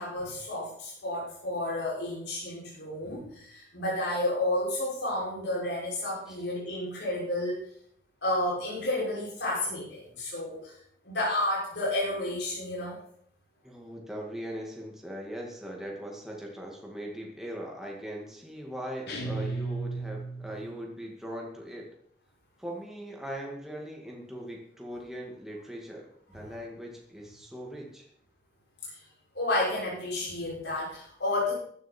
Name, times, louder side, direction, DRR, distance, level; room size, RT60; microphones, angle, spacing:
voice 1, 0.0-7.6 8.2-10.8 11.0-13.0 28.8-29.0 29.3-31.5, left 1 dB, 85° left, -6 dB, 6.3 m, -31 dB
voice 2, 13.6-21.9 22.6-26.1 26.3-28.1, equal, 5° right, -2 dB, 2.2 m, -40 dB
sound 1, 19.1-20.8, right 3 dB, 70° left, 3.5 m, -34 dB
14.0 x 11.0 x 4.5 m, 0.65 s
head